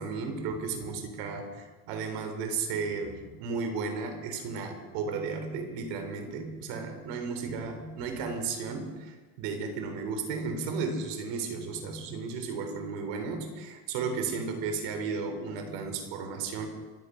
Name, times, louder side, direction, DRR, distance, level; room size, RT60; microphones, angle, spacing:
voice 1, 0.0-16.7, right 4 dB, 75° right, 6 dB, 3.5 m, -34 dB
25.5 x 9.1 x 5.6 m, 1.4 s
supercardioid pair, 95°, 43 cm